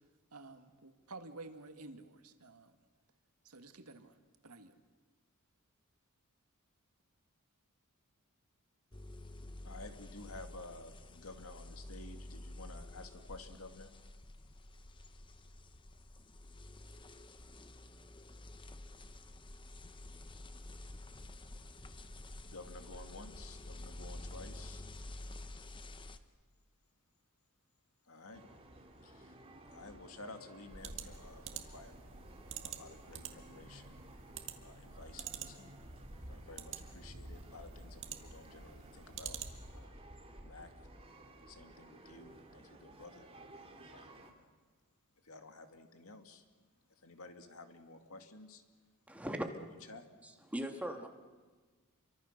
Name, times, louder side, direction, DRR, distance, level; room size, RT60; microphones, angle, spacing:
voice 1, 0.3-2.8 3.4-4.2 4.4-4.8, right 3 dB, 90° right, 7 dB, 1.9 m, -51 dB
sound 1, 8.9-26.2, left 1 dB, 20° left, 1.0 m, -50 dB
voice 2, 9.6-13.9 22.4-24.8 28.0-28.4 29.0-29.4 29.7-32.3 32.6-34.0 34.6-35.8 36.3-39.4 39.7-40.0 40.4-40.7 41.5-43.3 43.9-44.2 45.2-46.4 47.0-48.6 49.2-49.3 49.9-50.1, left 2 dB, 70° left, 6 dB, 2.2 m, -53 dB
sound 2, 28.3-44.3, right 1 dB, 25° right, 2.8 m, -54 dB
sound 3, 30.7-39.8, right 8 dB, 60° right, 1.9 m, -48 dB
voice 3, 49.1-49.5 50.2-51.1, right 1 dB, 5° right, 3 dB, 2.0 m, -39 dB
28.5 x 24.0 x 6.7 m, 1.4 s
head